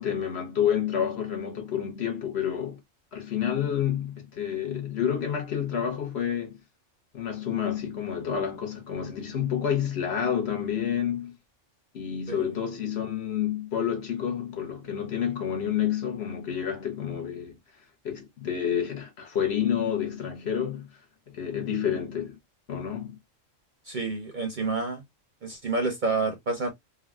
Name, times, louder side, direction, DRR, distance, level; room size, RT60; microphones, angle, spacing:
voice 1, 0.0-2.8 3.1-6.6 7.1-11.4 11.9-17.6 18.0-21.0 21.3-22.3 22.7-23.2, left 9 dB, 55° left, 1.1 m, -29 dB
voice 2, 23.9-25.0 25.4-26.7, right 3 dB, 50° right, 0.7 m, -29 dB
3.4 x 2.3 x 2.2 m
omnidirectional pair, 1.3 m